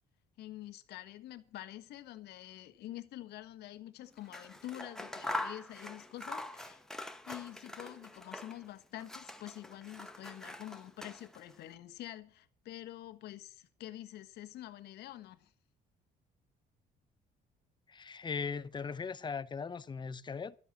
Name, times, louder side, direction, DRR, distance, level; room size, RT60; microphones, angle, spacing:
voice 1, 0.4-6.8 7.3-15.5, left 14 dB, 75° left, 1.5 m, -47 dB
Scissors, 4.2-8.7 9.0-11.5, left 1 dB, 5° left, 1.2 m, -43 dB
voice 2, 17.9-20.6, left 5 dB, 25° left, 0.8 m, -39 dB
12.0 x 8.5 x 7.4 m
cardioid pair, 110°, 17 cm